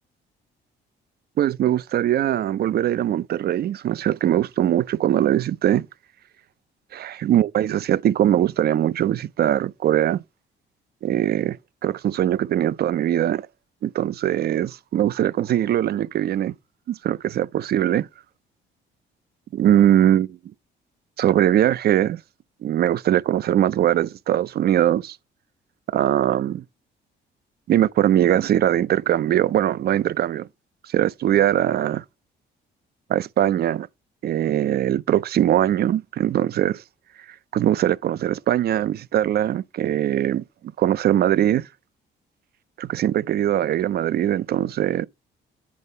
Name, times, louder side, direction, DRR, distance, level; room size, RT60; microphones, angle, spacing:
voice 1, 1.4-5.9 6.9-10.2 11.0-11.6 11.8-13.5 13.8-16.5 16.9-18.1 19.5-20.4 21.2-22.2 22.6-25.2 25.9-26.6 27.7-30.5 30.8-32.0 33.1-33.9 34.2-36.8 37.5-40.4 40.8-41.7 42.8-45.1, right 11 dB, 55° right, 0.4 m, -21 dB
8.5 x 4.0 x 5.4 m
cardioid pair, 90°, 20 cm